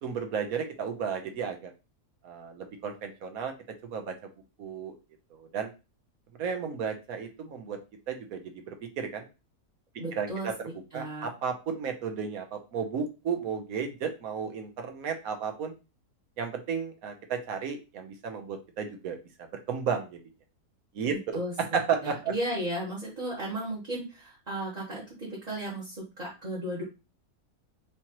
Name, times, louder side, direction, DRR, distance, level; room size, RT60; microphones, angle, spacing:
voice 1, 0.0-1.7 2.2-3.5 3.8-4.1 4.6-4.9 5.3-5.7 6.4-7.8 8.1-8.4 8.7-9.3 10.1-15.7 16.4-19.2 19.7-20.2 20.9-21.4 21.7-22.3, right 6 dB, 65° right, 5 dB, 1.2 m, -33 dB
voice 2, 10.0-10.5 10.9-11.3 21.1-21.5 22.0-26.8, right 1 dB, 25° right, -6 dB, 1.3 m, -35 dB
5.0 x 2.9 x 2.9 m, 0.29 s
omnidirectional pair, 1.7 m